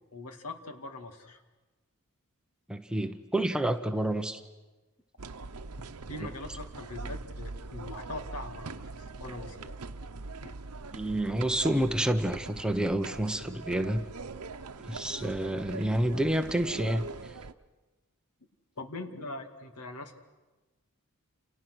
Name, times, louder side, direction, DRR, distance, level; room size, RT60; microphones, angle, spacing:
voice 1, 0.1-1.4 5.8-9.8 10.4-10.6 18.8-20.2, left 2 dB, 85° left, 6 dB, 2.3 m, -42 dB
voice 2, 2.7-4.4 10.9-14.0 14.9-17.0, right 1 dB, 5° right, 7 dB, 0.9 m, -29 dB
sound 1, 5.2-17.5, right 3 dB, 80° right, 0.9 m, -42 dB
29.0 x 29.0 x 6.3 m, 1.2 s
head